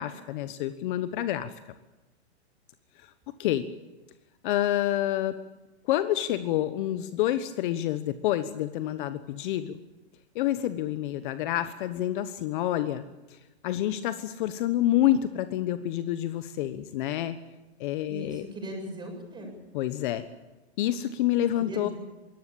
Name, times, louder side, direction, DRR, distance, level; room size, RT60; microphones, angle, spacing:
voice 1, 0.0-1.5 3.0-3.1 3.4-3.7 4.4-5.4 5.9-9.8 10.3-13.0 13.3-13.4 13.6-17.3 17.8-18.4 19.7-20.3 20.8-21.9, left 13 dB, 50° left, 12 dB, 1.2 m, -28 dB
voice 2, 18.1-19.5 21.6-21.9, equal, 15° right, 2 dB, 7.4 m, -38 dB
22.5 x 18.0 x 8.7 m, 1.0 s
hypercardioid pair, 135°, 33 cm